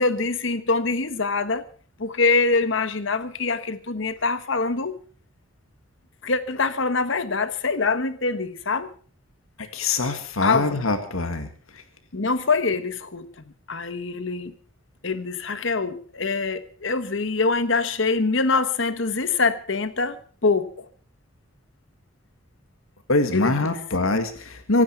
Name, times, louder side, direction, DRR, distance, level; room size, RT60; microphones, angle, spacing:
voice 1, 0.0-1.6 2.0-5.0 6.2-8.9 10.4-10.9 12.1-13.3 13.7-14.5 15.0-20.9 23.3-23.8, left 4 dB, 60° left, 1.2 m, -24 dB
voice 2, 9.7-11.5 23.1-24.8, left 2 dB, 75° left, 2.1 m, -23 dB
25.0 x 9.7 x 5.9 m
head